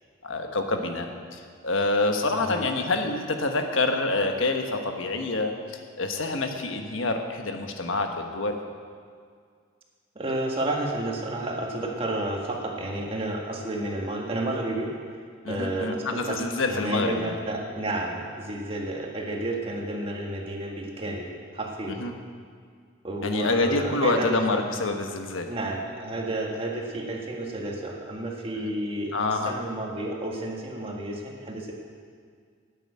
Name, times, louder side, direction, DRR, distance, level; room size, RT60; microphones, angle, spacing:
voice 1, 0.2-5.5 6.0-8.6 15.4-17.3 21.9-22.1 23.2-25.5 28.6-28.7 29.1-29.5, left 2 dB, 85° left, 4 dB, 1.3 m, -27 dB
voice 2, 10.2-14.9 15.5-22.0 23.0-24.6 25.5-31.7, right 1 dB, 30° right, -1 dB, 1.7 m, -31 dB
11.0 x 9.1 x 8.5 m, 2.1 s
head